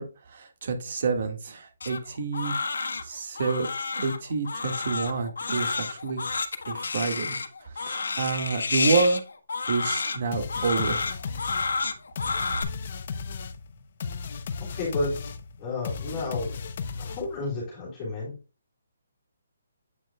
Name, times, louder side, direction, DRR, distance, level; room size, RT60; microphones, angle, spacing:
voice 1, 0.0-2.6 3.0-3.7 4.0-6.2 6.7-7.4 7.6-9.2 9.7-11.1, right 4 dB, 50° right, 6 dB, 1.8 m, -28 dB
Crying sobbing, 1.8-12.6, left 4 dB, 85° left, 1.2 m, -30 dB
sound 1, 10.3-17.5, left 5 dB, 50° left, 0.7 m, -35 dB
voice 2, 14.6-16.6 17.0-18.4, left 2 dB, 20° left, -6 dB, 3.0 m, -32 dB
8.4 x 6.1 x 2.3 m, 0.31 s
hypercardioid pair, 160°, 0 cm